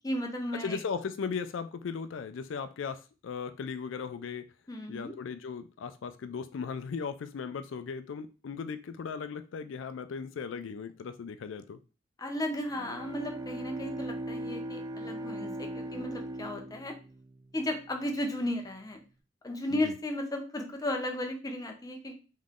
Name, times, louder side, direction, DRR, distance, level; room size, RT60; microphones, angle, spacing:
voice 1, 0.0-0.8 4.7-5.1 12.2-17.0 17.5-19.0 19.4-22.2, left 1 dB, 20° left, 0.7 m, -34 dB
voice 2, 0.6-4.5 4.9-11.8 19.7-19.9, left 5 dB, 85° left, 0.4 m, -37 dB
Bowed string instrument, 12.6-18.2, right 1 dB, 20° right, 0.3 m, -39 dB
3.8 x 3.1 x 3.6 m
head